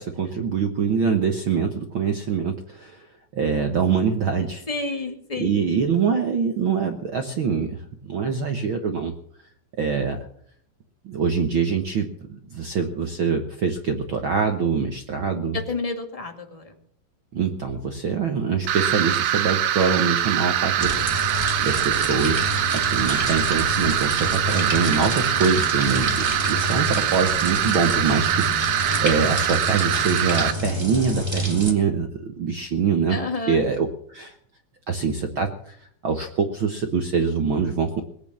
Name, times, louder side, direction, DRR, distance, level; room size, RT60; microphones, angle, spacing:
voice 1, 0.0-3.1 3.3-4.6 5.4-9.1 9.8-10.3 11.0-12.1 12.5-15.6 17.3-20.9 21.2-33.2 33.5-34.4 34.9-35.8 36.0-38.0, right 6 dB, 70° right, 5 dB, 1.2 m, -24 dB
voice 2, 4.7-5.6 15.5-16.7 33.1-33.6, left 3 dB, 15° left, 4 dB, 1.3 m, -30 dB
sound 1, 18.7-30.5, right 11 dB, 90° right, 2.9 m, -23 dB
sound 2, 20.8-31.7, left 1 dB, 15° right, 0.9 m, -29 dB
20.0 x 8.8 x 7.4 m, 0.62 s
omnidirectional pair, 4.1 m